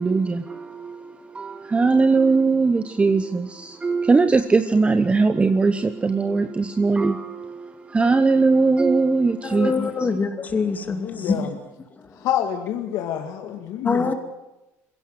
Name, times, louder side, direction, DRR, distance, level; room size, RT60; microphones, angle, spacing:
voice 1, 0.0-10.1, right 4 dB, 20° right, 0.9 m, -20 dB
voice 2, 9.4-11.4 13.8-14.1, left 4 dB, 25° left, 2.6 m, -24 dB
voice 3, 10.9-11.6 12.2-14.1, left 10 dB, 65° left, 2.0 m, -27 dB
21.5 x 16.5 x 7.6 m
supercardioid pair, 110°, 7 cm